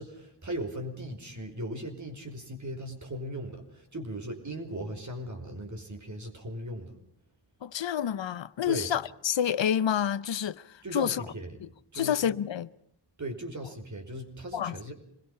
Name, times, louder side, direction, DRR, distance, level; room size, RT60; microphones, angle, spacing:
voice 1, 0.0-6.9 8.6-8.9 10.8-11.6 11.9-12.2 13.2-14.9, right 1 dB, 40° right, 5.1 m, -38 dB
voice 2, 7.6-10.6 10.9-11.2 11.6-11.7 11.9-12.7 14.5-14.7, left 9 dB, 90° left, 0.9 m, -28 dB
26.5 x 21.5 x 5.7 m
wide cardioid pair, 115°, 43 cm